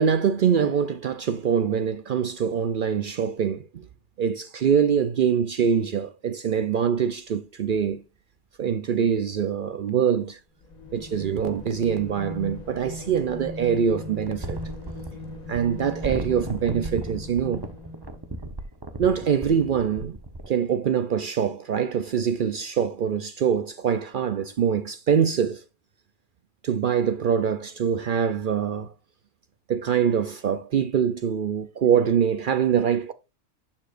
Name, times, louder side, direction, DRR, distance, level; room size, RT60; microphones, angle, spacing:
voice 1, 0.0-3.9 4.2-8.0 8.6-10.4 10.9-14.6 15.5-17.6 19.0-20.2 20.5-25.6 26.6-28.9 29.7-33.1, right 7 dB, 75° right, 0.4 m, -24 dB
sound 1, 9.9-10.0 12.2-13.3 14.2-20.5, right 2 dB, 20° right, 0.7 m, -36 dB
sound 2, 10.6-18.3, left 1 dB, 70° left, 2.3 m, -39 dB
11.5 x 7.0 x 2.5 m
omnidirectional pair, 1.5 m